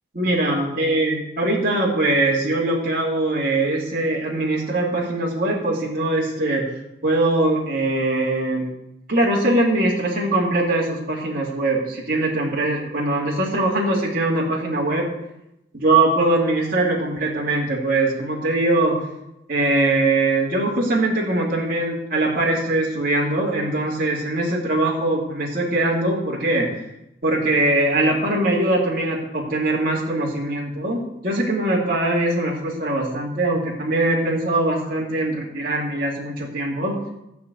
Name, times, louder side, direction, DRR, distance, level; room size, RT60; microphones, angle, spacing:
voice 1, 0.2-6.6 7.0-8.6 9.1-15.1 15.7-19.0 19.5-26.7 27.2-37.0, right 2 dB, 50° right, -6 dB, 2.7 m, -21 dB
13.5 x 5.9 x 8.2 m, 0.86 s
head